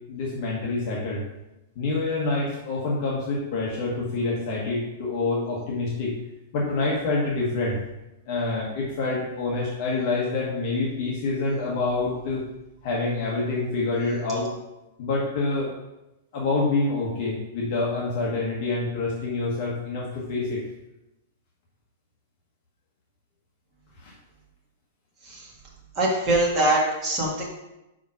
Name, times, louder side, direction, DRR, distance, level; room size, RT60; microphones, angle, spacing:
voice 1, 0.1-1.2 1.8-6.1 6.5-7.8 8.3-12.4 12.8-14.5 15.0-15.7 16.3-20.6 24.0-24.1, left 3 dB, 35° left, -4 dB, 1.3 m, -27 dB
voice 2, 26.0-27.5, right 1 dB, 20° right, -3 dB, 1.7 m, -23 dB
5.3 x 5.0 x 6.0 m, 0.94 s
supercardioid pair, 175°, 0 cm